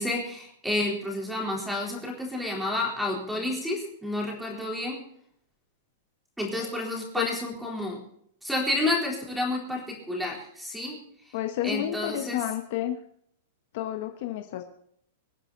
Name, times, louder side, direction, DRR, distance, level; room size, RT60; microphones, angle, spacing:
voice 1, 0.0-5.0 6.4-8.0 8.4-11.0 11.6-12.4, left 2 dB, ahead, 0 dB, 3.8 m, -30 dB
voice 2, 11.3-13.0 13.7-14.6, left 12 dB, 45° left, 6 dB, 1.3 m, -31 dB
25.5 x 9.9 x 4.1 m, 0.69 s
supercardioid pair, 175°, 0 cm